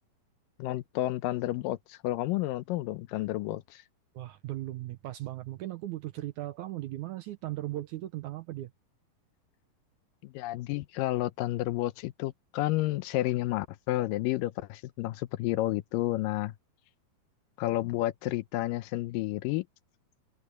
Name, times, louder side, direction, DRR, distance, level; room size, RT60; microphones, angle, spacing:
voice 1, 0.6-3.8 10.2-16.5 17.6-19.7, left 16 dB, 80° left, 2.2 m, -31 dB
voice 2, 4.2-8.7, right 16 dB, 75° right, 1.8 m, -37 dB
omnidirectional pair, 4.1 m